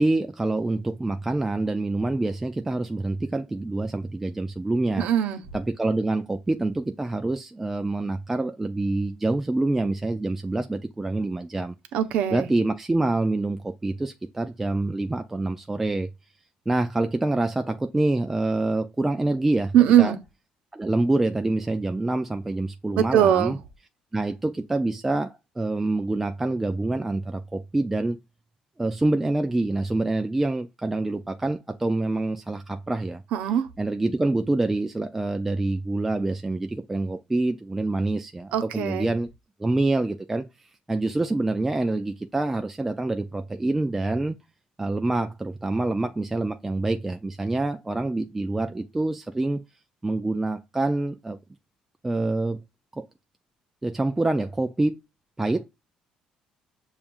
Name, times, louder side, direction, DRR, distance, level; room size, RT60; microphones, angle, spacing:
voice 1, 0.0-5.1 5.5-11.7 12.3-16.1 16.7-20.2 20.7-23.6 24.1-28.2 28.8-33.5 33.8-39.3 39.6-40.4 40.9-44.4 44.8-49.6 50.0-51.4 52.0-52.6 53.0-53.1 53.8-55.0 55.4-55.6, right 2 dB, 10° right, 0.3 m, -26 dB
voice 2, 5.0-5.4 11.9-12.5 19.7-20.2 22.9-23.5 33.3-33.7 38.5-39.1, right 10 dB, 70° right, 0.8 m, -20 dB
7.0 x 2.4 x 2.5 m
cardioid pair, 150°, 2 cm